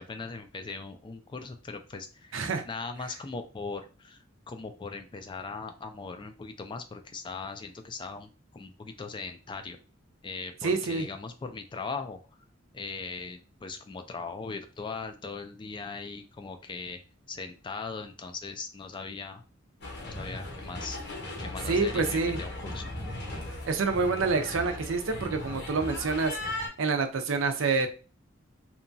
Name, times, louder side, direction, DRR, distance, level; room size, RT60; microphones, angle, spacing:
voice 1, 0.0-9.8 10.2-12.2 12.7-17.0 17.3-19.4 20.0-21.0 21.4-22.9, left 4 dB, 25° left, 7 dB, 0.3 m, -39 dB
voice 2, 2.3-2.6 10.6-11.1 21.7-22.4 23.7-27.9, right 4 dB, 70° right, 6 dB, 0.5 m, -27 dB
sound 1, 19.8-26.7, left 2 dB, 55° left, 0.8 m, -37 dB
2.9 x 2.3 x 2.6 m, 0.34 s
head